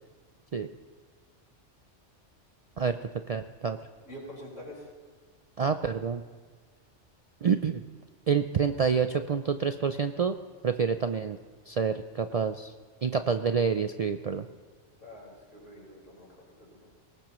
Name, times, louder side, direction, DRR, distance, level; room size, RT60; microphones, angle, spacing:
voice 1, 2.8-3.8 5.6-6.2 7.4-7.8 8.3-10.3 10.6-11.4 11.7-12.7 13.0-14.4, right 6 dB, 60° right, 8 dB, 0.4 m, -28 dB
voice 2, 4.1-4.9 15.0-17.0, equal, 90° left, -4 dB, 5.3 m, -46 dB
21.0 x 18.5 x 3.0 m, 1.5 s
omnidirectional pair, 1.2 m